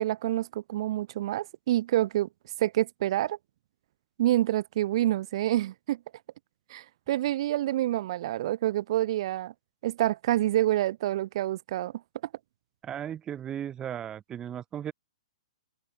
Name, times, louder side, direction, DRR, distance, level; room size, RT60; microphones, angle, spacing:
voice 1, 0.0-2.3 2.6-3.4 4.2-6.0 6.7-9.5 9.8-11.9, right 14 dB, 50° right, 2.2 m, -27 dB
voice 2, 12.8-14.9, right 10 dB, 20° right, 3.9 m, -36 dB
open air
figure-of-eight pair, 120°, 4 cm